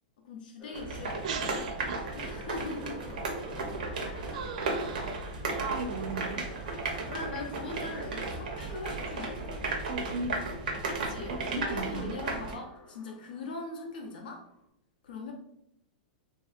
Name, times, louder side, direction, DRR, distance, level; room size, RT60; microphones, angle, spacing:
voice 1, 0.3-1.6 2.1-3.2 4.0-4.2 5.6-5.7 7.1-9.6 10.9-14.4 15.0-15.3, left 3 dB, 75° left, 1 dB, 0.6 m, -41 dB
sound 1, 0.6-14.7, left 1 dB, 15° left, 0.5 m, -52 dB
sound 2, 0.7-12.5, right 3 dB, 70° right, 0.7 m, -35 dB
voice 2, 1.2-2.0 2.3-2.4 4.3-5.3 5.6-6.5 9.8-10.4 11.0-12.2, right 4 dB, 50° right, 7 dB, 0.4 m, -37 dB
3.3 x 2.7 x 2.4 m, 0.80 s
supercardioid pair, 180°, 5 cm